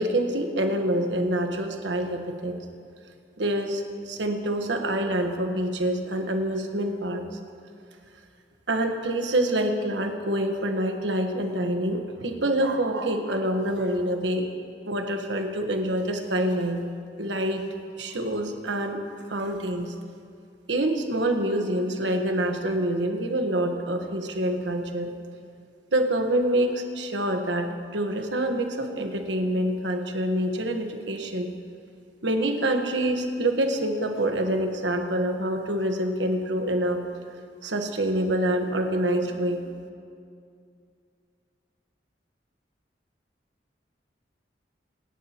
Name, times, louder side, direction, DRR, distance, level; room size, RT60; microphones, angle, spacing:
voice 1, 0.0-2.6 3.4-7.2 8.7-14.5 14.8-16.8 17.2-17.6 18.0-19.9 20.7-25.1 25.9-31.5 32.2-37.0 37.6-39.6, right 1 dB, 85° right, 4 dB, 1.3 m, -26 dB
24.5 x 11.0 x 3.0 m, 2.4 s
head